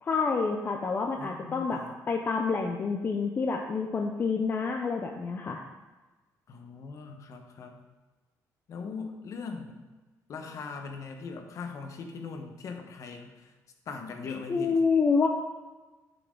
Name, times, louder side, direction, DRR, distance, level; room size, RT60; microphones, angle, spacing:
voice 1, 0.0-1.8 2.1-5.6 14.5-15.3, left 4 dB, 30° left, 2 dB, 0.6 m, -27 dB
voice 2, 1.2-1.9 6.5-7.8 8.7-9.8 10.3-13.5 13.9-14.8, left 4 dB, 50° left, 4 dB, 1.1 m, -40 dB
10.5 x 6.0 x 3.8 m, 1.2 s
cardioid pair, 145°, 7 cm